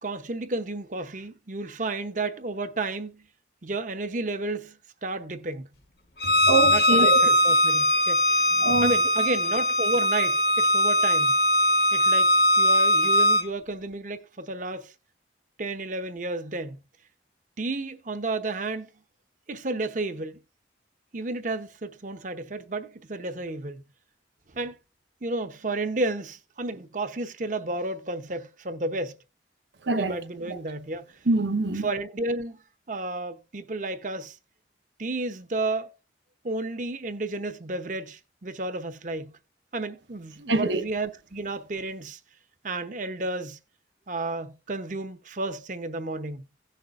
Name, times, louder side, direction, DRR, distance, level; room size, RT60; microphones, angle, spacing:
voice 1, 0.0-3.2 3.6-4.8 5.0-5.7 6.7-8.5 8.8-11.4 11.9-12.3 12.6-14.9 15.6-16.8 17.6-18.9 19.5-20.4 21.1-23.8 24.5-24.7 25.2-29.2 30.0-31.1 31.8-32.6 32.9-34.4 35.0-35.9 36.4-39.3 39.7-42.2 42.6-43.6 44.1-46.5, right 2 dB, 45° right, 0.8 m, -32 dB
Bowed string instrument, 6.2-13.4, equal, 55° left, 1.2 m, -21 dB
voice 2, 6.2-7.2 8.6-8.9 29.8-30.2 30.5-30.6 31.3-31.9 40.5-40.8, right 3 dB, 75° right, 1.0 m, -24 dB
16.5 x 6.6 x 2.5 m
head